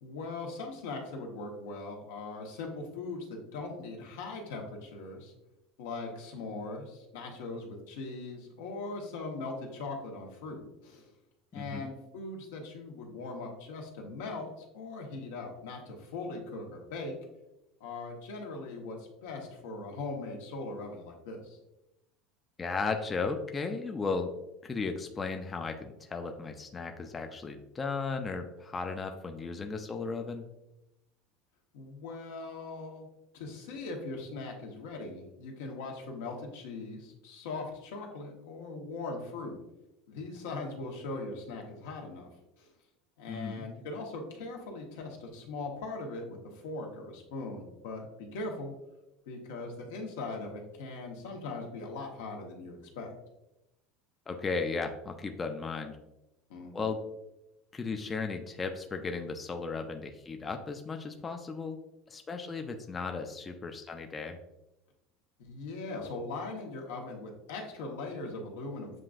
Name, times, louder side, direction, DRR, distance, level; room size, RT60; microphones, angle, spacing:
voice 1, 0.0-5.3 5.8-11.1 11.5-17.1 17.8-21.6 31.7-33.1 33.3-39.6 40.1-42.3 42.6-42.7 43.2-48.7 49.3-53.1 56.5-56.9 65.4-69.0, left 3 dB, 85° left, 1 dB, 1.0 m, -40 dB
voice 2, 11.5-11.9 22.6-24.3 24.6-30.4 43.3-43.7 54.3-56.0 56.7-57.0 57.7-61.8 62.1-64.4, left 4 dB, 20° left, 5 dB, 0.4 m, -35 dB
7.5 x 2.5 x 2.4 m, 0.92 s
supercardioid pair, 125°, 0 cm